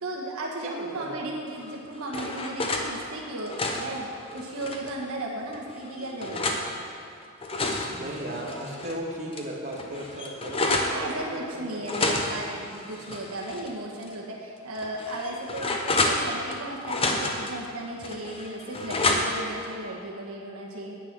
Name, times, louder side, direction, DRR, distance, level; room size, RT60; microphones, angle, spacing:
voice 1, 0.0-4.1 4.3-6.6 10.9-21.0, right 1 dB, 75° right, -2 dB, 1.3 m, -35 dB
voice 2, 0.6-1.3 7.9-11.8, right 1 dB, 30° right, -4 dB, 1.8 m, -36 dB
sound 1, 1.6-2.9 3.3-5.0 5.5-6.6 7.2-9.0 9.3-9.4 9.7-11.0 11.8-13.7 14.0-14.1 14.7-16.6 16.8-17.5 18.0-19.5, left 2 dB, 25° left, 0.8 m, -29 dB
10.0 x 8.2 x 6.0 m, 2.4 s
head